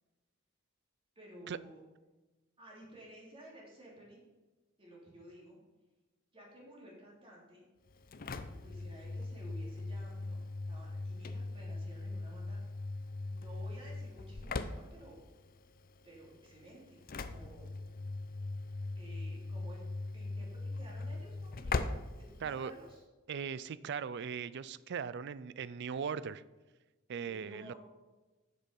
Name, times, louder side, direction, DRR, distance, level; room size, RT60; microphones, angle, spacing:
voice 1, 1.1-1.8 2.6-4.2 4.8-5.6 6.3-7.6 8.6-12.6 13.3-15.2 16.0-17.7 18.9-19.8 20.1-21.9 22.3-23.0 27.2-27.8, right 1 dB, 25° right, -4 dB, 3.0 m, -54 dB
Engine / Slam, 7.9-23.0, left 3 dB, 45° left, 0.6 m, -41 dB
voice 2, 22.4-22.7 23.3-26.4 27.1-27.7, right 6 dB, 55° right, 17 dB, 0.4 m, -39 dB
7.9 x 6.7 x 5.4 m, 1.2 s
head